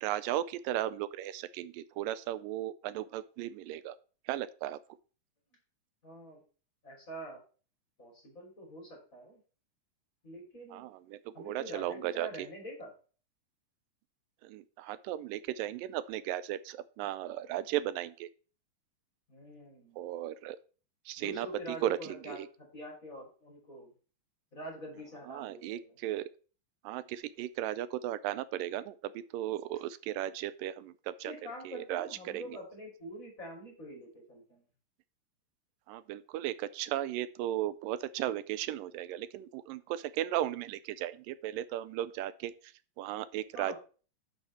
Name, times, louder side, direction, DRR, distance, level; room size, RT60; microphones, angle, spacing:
voice 1, 0.0-4.0 4.3-4.8 10.7-12.5 14.4-18.3 20.0-20.6 21.1-21.5 21.8-22.0 22.2-22.4 25.3-26.3 26.8-31.3 31.7-32.6 35.9-42.5 43.0-43.8, right 13 dB, 85° right, 15 dB, 2.2 m, -36 dB
voice 2, 6.0-6.4 6.8-7.4 8.0-9.4 10.2-10.9 11.3-12.9 19.3-20.0 21.2-23.9 24.5-26.0 31.2-34.6 43.5-43.8, equal, 25° left, -1 dB, 3.5 m, -45 dB
6.4 x 6.4 x 7.1 m, 0.38 s
omnidirectional pair, 3.9 m